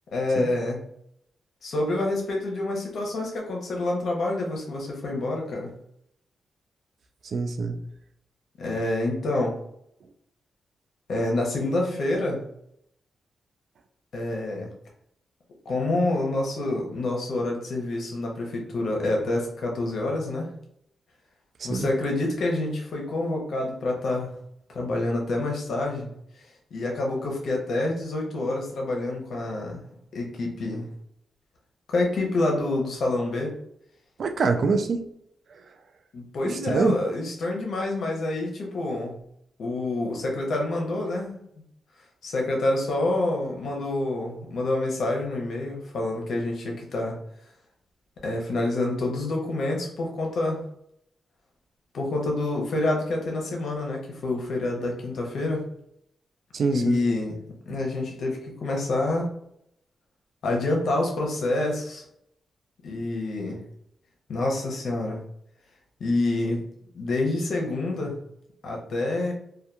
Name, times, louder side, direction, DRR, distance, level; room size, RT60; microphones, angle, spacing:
voice 1, 0.1-0.9 1.6-5.7 8.6-9.5 11.1-12.4 14.1-14.7 15.7-20.5 21.6-24.3 24.7-26.1 26.7-29.8 30.1-30.9 31.9-33.5 36.1-39.2 39.6-41.4 42.2-47.2 48.2-50.6 51.9-55.6 56.7-57.4 57.7-59.3 60.4-62.0 62.8-63.6 64.3-65.2 66.0-66.6 66.9-68.1 68.6-69.3, left 2 dB, 70° left, 0 dB, 0.7 m, -27 dB
voice 2, 7.3-7.8 21.6-21.9 34.2-35.0 35.5-35.6 36.4-36.9 56.5-57.0 57.7-57.8, right 4 dB, 65° right, 6 dB, 0.3 m, -25 dB
2.8 x 2.2 x 2.3 m, 0.73 s
cardioid pair, 105°, 0 cm